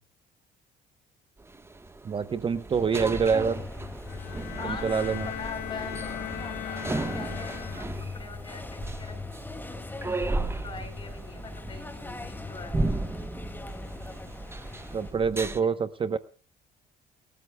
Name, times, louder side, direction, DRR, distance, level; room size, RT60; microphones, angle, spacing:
sound 1, 1.4-15.6, right 2 dB, 15° right, 1.2 m, -35 dB
voice 1, 2.0-3.6 4.6-5.3 14.9-16.2, right 6 dB, 30° right, 12 dB, 0.9 m, -26 dB
sound 2, 2.9-15.1, left 3 dB, 10° left, 2.3 m, -41 dB
Bowed string instrument, 4.1-8.2, left 14 dB, 75° left, 1.0 m, -39 dB
voice 2, 4.6-6.8 7.1-12.7 15.4-15.7, left 4 dB, 30° left, 4 dB, 6.7 m, -43 dB
29.0 x 13.5 x 2.3 m, 0.38 s
cardioid pair, 110°, 17 cm